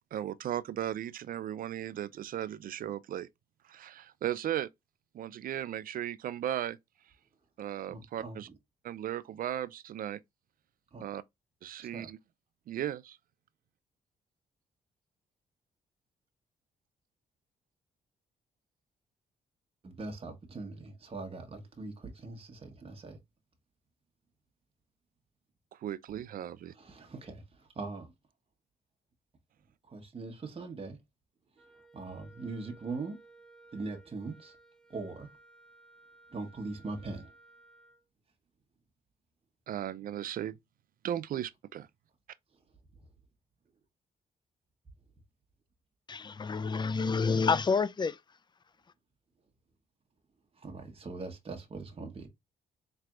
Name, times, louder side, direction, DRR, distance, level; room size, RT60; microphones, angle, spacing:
voice 1, 0.1-3.3 3.7-4.7 5.1-6.8 7.6-8.5 8.8-10.2 11.0-11.2 11.6-12.2 12.7-13.2 25.8-26.7 39.7-40.6 41.0-41.9, right 11 dB, 60° right, 0.4 m, -36 dB
voice 2, 7.9-8.6 10.9-11.0 11.8-12.1 19.8-23.2 26.7-28.1 29.8-31.0 31.9-33.2 33.7-34.6 34.9-35.3 36.3-37.3 50.6-52.3, right 3 dB, 35° right, 1.2 m, -41 dB
Wind instrument woodwind instrument, 31.6-38.0, right 2 dB, 5° left, 1.5 m, -58 dB
voice 3, 46.1-48.2, left 5 dB, 25° left, 0.4 m, -28 dB
4.2 x 3.3 x 2.4 m
supercardioid pair, 65°, 17 cm